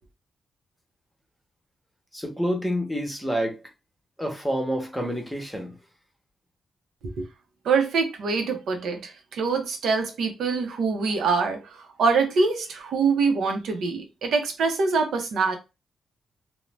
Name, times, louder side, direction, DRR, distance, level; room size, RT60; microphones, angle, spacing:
voice 1, 2.1-3.6 4.2-5.7, equal, 5° left, 0.9 m, -28 dB
voice 2, 7.6-15.6, right 4 dB, 85° right, 0.6 m, -24 dB
2.5 x 2.1 x 3.1 m
cardioid pair, 105°, 0 cm